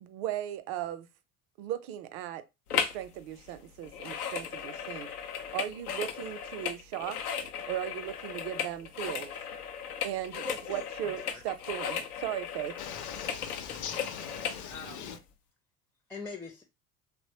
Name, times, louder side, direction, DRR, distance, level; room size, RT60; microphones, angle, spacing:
voice 1, 0.0-1.1 1.6-2.4 2.7-5.1 5.5-7.2 7.6-9.3 10.0-12.8, right 12 dB, 50° right, 0.5 m, -37 dB
sound 1, 2.7-3.1 3.3-14.6 15.1-15.2, left 7 dB, 80° left, 0.6 m, -36 dB
voice 2, 10.2-11.4 14.7-15.2 16.1-16.6, left 2 dB, 5° left, 0.4 m, -44 dB
voice 3, 12.8-15.2, left 8 dB, 40° left, 0.7 m, -41 dB
3.0 x 2.0 x 2.8 m
figure-of-eight pair, 60°, 45 cm